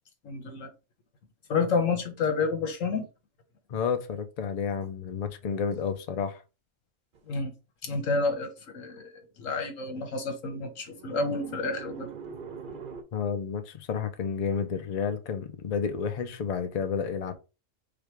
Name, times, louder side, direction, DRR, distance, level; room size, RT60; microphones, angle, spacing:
voice 1, 0.2-0.7 1.5-3.1 7.3-7.5 7.8-12.1, left 4 dB, 80° left, 1.5 m, -29 dB
voice 2, 3.7-6.4 13.1-17.3, left 6 dB, 45° left, 0.5 m, -31 dB
sound 1, 7.1-7.2 10.9-13.0, right 5 dB, 50° right, 0.7 m, -42 dB
5.1 x 2.3 x 4.5 m
omnidirectional pair, 1.3 m